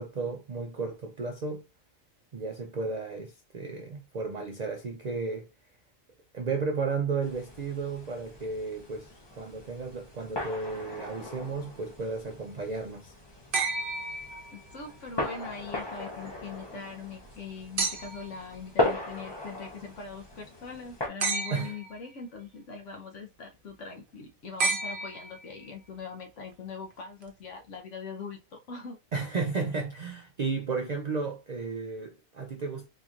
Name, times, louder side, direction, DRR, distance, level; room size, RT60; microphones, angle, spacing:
voice 1, 0.0-1.6 2.3-5.5 6.3-9.1 9.4-13.1 21.5-21.7 29.1-32.9, right 4 dB, 75° right, 0.3 m, -33 dB
sound 1, 7.2-21.1, left 1 dB, 25° left, 0.6 m, -37 dB
sound 2, 13.5-14.9 17.8-18.4 21.2-22.0 24.6-25.6 27.2-27.3, right 3 dB, 50° right, 0.8 m, -31 dB
voice 2, 14.5-29.0, left 5 dB, 65° left, 1.1 m, -42 dB
4.2 x 2.9 x 2.4 m
omnidirectional pair, 1.4 m